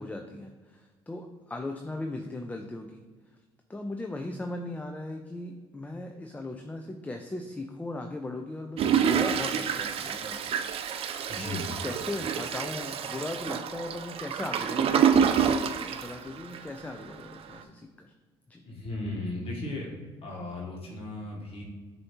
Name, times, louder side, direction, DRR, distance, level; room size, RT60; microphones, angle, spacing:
voice 1, 0.0-3.0 3.7-10.5 10.8-10.9 11.3-18.1 18.5-18.6 19.4-19.5, left 2 dB, 10° left, 4 dB, 0.4 m, -38 dB
Toilet flush, 8.8-16.8 17.3-17.4 17.6-17.7, right 8 dB, 50° right, 0.4 m, -27 dB
voice 2, 11.3-11.7 18.6-19.9 20.2-21.6, left 2 dB, 50° left, -2 dB, 1.2 m, -36 dB
6.3 x 2.7 x 3.0 m, 1.4 s
hypercardioid pair, 65°, 12 cm